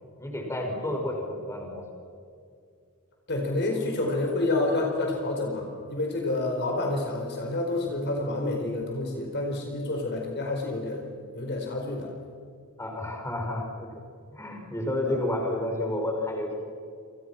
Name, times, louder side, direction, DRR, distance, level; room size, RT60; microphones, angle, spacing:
voice 1, 0.2-1.8 12.8-13.9 14.3-16.5, left 1 dB, 15° left, 0 dB, 6.3 m, -30 dB
voice 2, 3.3-11.1 11.3-12.1 15.0-15.1, left 2 dB, 50° left, 1 dB, 4.7 m, -29 dB
30.0 x 27.5 x 6.2 m, 2.2 s
head